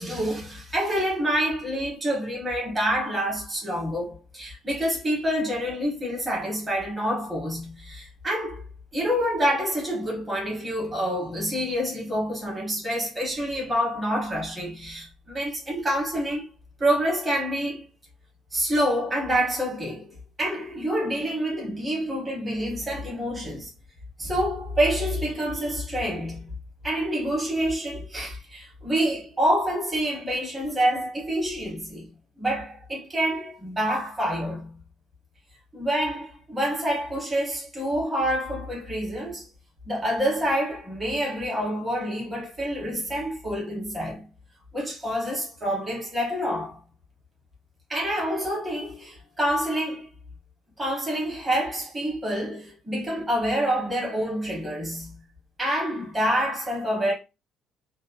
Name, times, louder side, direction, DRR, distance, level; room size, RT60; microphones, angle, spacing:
voice 1, 0.0-8.6 8.9-16.5 16.8-17.9 18.5-23.7 24.2-26.5 26.8-32.1 32.4-34.8 35.7-39.5 39.9-44.3 44.7-46.8 47.9-50.1 50.8-55.2 55.6-57.1, equal, 15° right, 1.0 m, -27 dB
2.7 x 2.1 x 2.5 m
cardioid pair, 160°, 0 cm